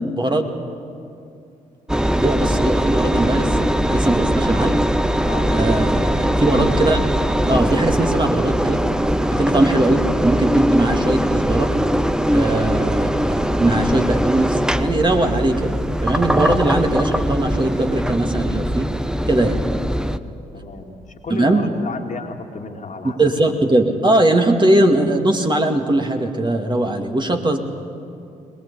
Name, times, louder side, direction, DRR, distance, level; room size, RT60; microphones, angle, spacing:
voice 1, 0.2-0.5 2.2-4.8 5.5-7.0 7.5-8.8 9.2-11.7 12.3-15.8 16.0-18.9 19.3-19.6 21.3-21.6 23.2-27.6, right 1 dB, 25° right, 4 dB, 2.2 m, -20 dB
Engine, 1.9-20.2, equal, 5° right, 0.9 m, -20 dB
voice 2, 5.2-5.8 19.4-19.5 20.0-23.5, left 4 dB, 45° left, 4 dB, 2.2 m, -34 dB
21.5 x 19.5 x 8.4 m, 2.5 s
hypercardioid pair, 45°, 17 cm